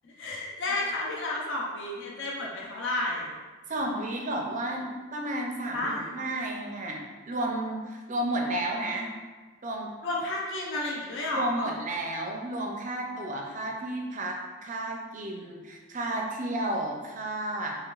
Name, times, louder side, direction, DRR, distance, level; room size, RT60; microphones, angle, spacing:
voice 1, 0.0-3.3 5.7-6.1 10.0-11.7, left 2 dB, 55° left, -3 dB, 0.6 m, -31 dB
voice 2, 3.7-7.0 7.3-9.1 9.6-9.9 11.3-17.7, right 1 dB, 35° right, 0 dB, 0.5 m, -32 dB
4.7 x 3.1 x 2.4 m, 1.3 s
head